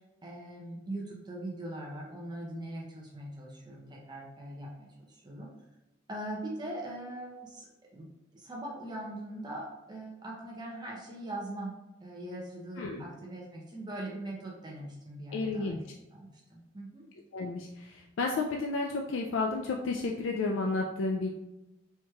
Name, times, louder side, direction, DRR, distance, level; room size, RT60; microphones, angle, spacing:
voice 1, 0.2-5.5 6.1-8.1 8.3-11.7 12.0-17.0, right 1 dB, 25° right, -3 dB, 0.6 m, -41 dB
voice 2, 15.3-15.8 17.3-21.3, left 3 dB, 85° left, 1 dB, 0.4 m, -32 dB
4.4 x 3.0 x 2.3 m, 0.97 s
head